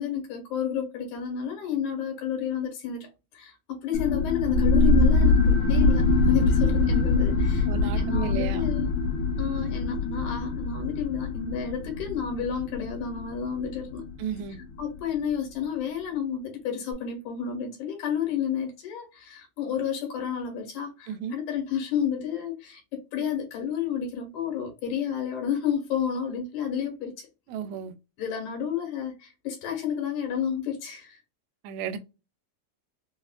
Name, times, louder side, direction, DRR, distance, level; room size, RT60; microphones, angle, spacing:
voice 1, 0.0-8.9 9.4-14.1 14.8-27.3 28.2-31.2, left 8 dB, 90° left, 2.4 m, -31 dB
sound 1, 3.9-15.1, left 3 dB, 65° left, 1.5 m, -24 dB
voice 2, 7.7-8.7 14.2-14.6 21.1-21.4 27.5-27.9 31.6-32.0, right 8 dB, 80° right, 1.6 m, -33 dB
4.8 x 2.1 x 2.3 m
omnidirectional pair, 3.4 m